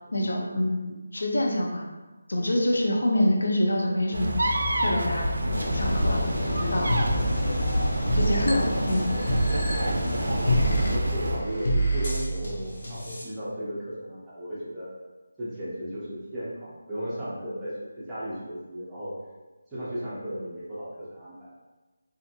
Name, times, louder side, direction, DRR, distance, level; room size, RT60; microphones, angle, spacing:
voice 1, 0.1-1.9 2.3-4.4 4.8-6.9 8.1-9.1, left 1 dB, 80° left, 0 dB, 0.6 m, -26 dB
sound 1, 4.1-11.4, equal, 75° right, 0.4 m, -28 dB
sound 2, 5.5-11.0, equal, 60° left, 0.9 m, -31 dB
sound 3, 6.9-13.2, right 1 dB, 35° left, 0.6 m, -28 dB
voice 2, 8.4-9.1 10.1-10.5 10.9-14.9 15.4-19.1 19.7-21.6, equal, 5° right, -12 dB, 0.4 m, -35 dB
2.5 x 2.5 x 2.7 m, 1.2 s
figure-of-eight pair, 180°, 0 cm